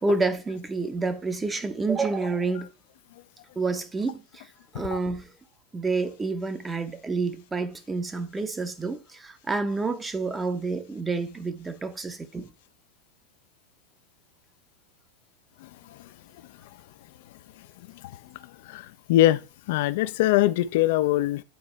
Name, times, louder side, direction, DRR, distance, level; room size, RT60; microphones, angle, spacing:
voice 1, 0.0-2.7 3.6-4.5 4.7-5.3 5.7-12.5, right 3 dB, 10° right, 0.7 m, -29 dB
voice 2, 15.6-16.0 18.7-19.4 19.7-21.4, left 15 dB, 50° left, 0.4 m, -23 dB
9.3 x 4.3 x 3.3 m
figure-of-eight pair, 90°, 0 cm